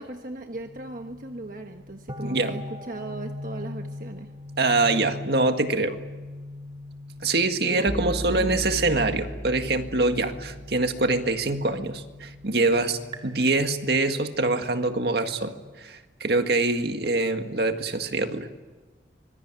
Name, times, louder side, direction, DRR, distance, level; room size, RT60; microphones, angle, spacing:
voice 1, 0.0-4.3 7.6-8.5, right 2 dB, 50° right, 4 dB, 1.3 m, -37 dB
sound 1, 0.5-15.6, left 1 dB, 25° right, 2.1 m, -38 dB
voice 2, 2.2-2.6 4.6-6.0 7.2-18.5, right 2 dB, 65° right, 6 dB, 1.9 m, -24 dB
25.5 x 21.5 x 9.0 m, 1.3 s
head